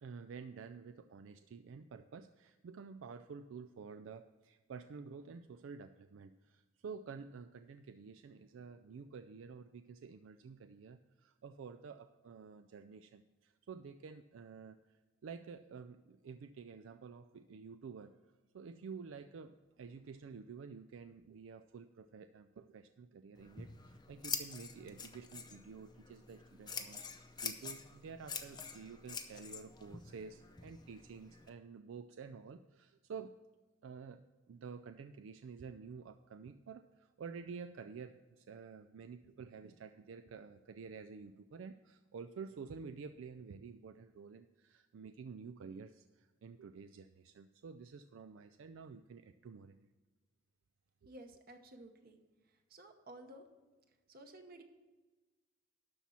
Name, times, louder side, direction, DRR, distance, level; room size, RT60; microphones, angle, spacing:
voice 1, 0.0-14.8 15.2-18.2 18.5-33.4 33.8-34.2 34.5-49.9 51.0-51.1, right 5 dB, 85° right, 9 dB, 0.4 m, -50 dB
Scissors, 23.3-31.5, left 6 dB, 20° left, 0.6 m, -46 dB
voice 2, 51.0-52.2 52.7-53.4 54.1-54.6, right 1 dB, 50° right, 5 dB, 1.0 m, -54 dB
12.0 x 4.3 x 7.1 m, 1.2 s
head